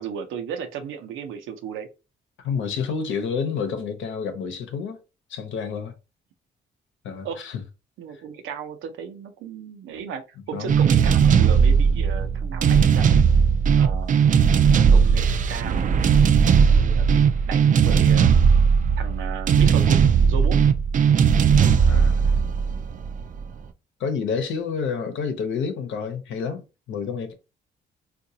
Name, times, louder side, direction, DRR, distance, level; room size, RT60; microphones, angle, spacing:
voice 1, 0.0-1.9 7.2-7.4 8.0-13.0 13.7-14.3 14.9-16.0 16.6-18.3 19.0-20.6, right 7 dB, 85° right, 0.7 m, -35 dB
voice 2, 2.4-5.0 5.3-5.9 7.0-7.6 10.5-10.8 21.8-22.4 24.0-27.3, left 6 dB, 75° left, 0.9 m, -29 dB
sound 1, 10.7-23.4, right 6 dB, 40° right, 0.4 m, -18 dB
3.8 x 2.5 x 2.7 m
cardioid pair, 90°, 20 cm